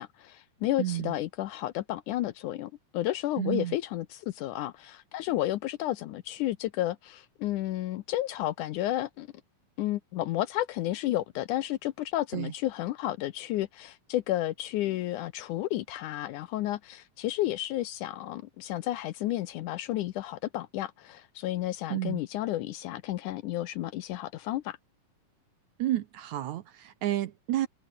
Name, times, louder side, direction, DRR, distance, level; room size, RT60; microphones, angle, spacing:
voice 1, 0.0-9.3 9.8-24.8, left 14 dB, 75° left, 2.0 m, -32 dB
voice 2, 0.8-1.2 3.4-3.8 12.3-12.5 21.9-22.2 25.8-27.7, right 14 dB, 70° right, 1.9 m, -31 dB
omnidirectional pair, 4.1 m